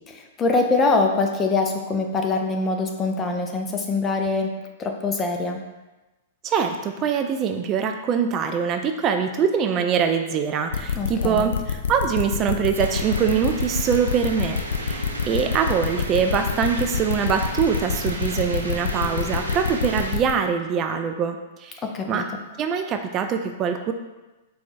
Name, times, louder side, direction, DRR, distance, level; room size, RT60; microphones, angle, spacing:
voice 1, 0.1-4.5 4.8-5.6 11.0-11.5 21.8-22.2, left 3 dB, 25° left, 3 dB, 0.6 m, -23 dB
voice 2, 6.4-22.2 22.6-23.9, right 7 dB, 30° right, 6 dB, 0.3 m, -24 dB
sound 1, 10.7-20.3, left 6 dB, 70° left, 0.4 m, -26 dB
sound 2, 12.7-20.2, right 2 dB, 85° right, 0.6 m, -35 dB
4.3 x 2.3 x 4.1 m, 1.1 s
figure-of-eight pair, 105°, 0 cm